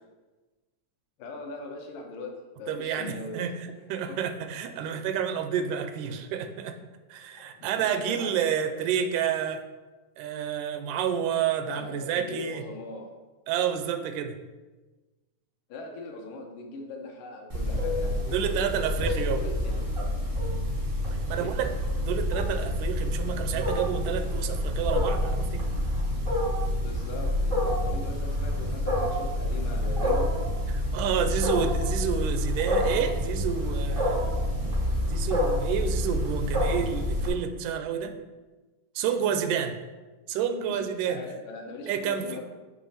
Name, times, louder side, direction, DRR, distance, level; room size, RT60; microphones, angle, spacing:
voice 1, 1.2-3.5 4.1-4.2 7.4-8.8 11.7-13.2 15.7-18.6 19.0-20.1 21.3-21.6 26.8-30.3 40.6-42.4, left 3 dB, 80° left, 1 dB, 2.5 m, -40 dB
voice 2, 2.7-6.8 7.1-9.6 10.2-12.6 13.5-14.4 18.2-19.4 21.3-21.7 22.0-25.7 30.7-34.3 35.1-38.2 39.0-39.8 40.3-41.2 41.9-42.4, right 8 dB, 85° right, 9 dB, 2.1 m, -29 dB
Wild animals, 17.5-37.3, left 1 dB, 50° right, 0.6 m, -28 dB
7.4 x 3.2 x 5.6 m, 1.2 s
omnidirectional pair, 3.6 m